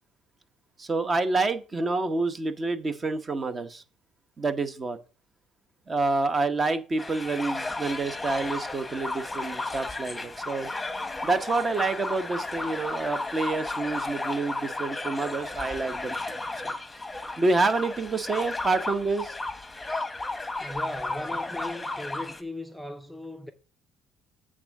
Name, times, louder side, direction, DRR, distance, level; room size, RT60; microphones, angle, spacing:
voice 1, 0.8-3.8 4.4-5.0 5.9-10.7 11.2-16.2 16.6-16.7 17.4-19.3, right 3 dB, 30° right, 0.9 m, -28 dB
sound 1, 7.0-22.4, left 2 dB, 15° left, 1.0 m, -34 dB
voice 2, 20.6-23.5, left 1 dB, ahead, 0.6 m, -38 dB
8.7 x 3.7 x 5.8 m
supercardioid pair, 85°, 0 cm